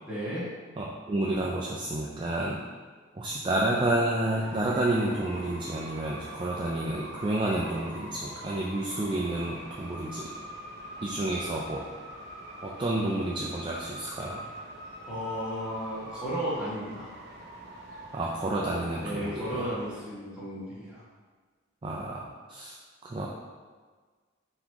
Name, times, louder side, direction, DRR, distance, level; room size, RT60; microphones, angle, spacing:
voice 1, 0.1-0.5 15.1-17.1 19.0-21.0, equal, 5° right, -11 dB, 1.4 m, -34 dB
voice 2, 0.8-2.6 3.1-10.3 11.0-11.8 12.6-14.4 18.1-19.7 21.8-22.7 23.0-23.3, right 1 dB, 25° right, -4 dB, 0.3 m, -30 dB
sound 1, 4.2-20.0, right 1 dB, 55° right, 0.7 m, -44 dB
4.0 x 2.9 x 3.5 m, 1.5 s
head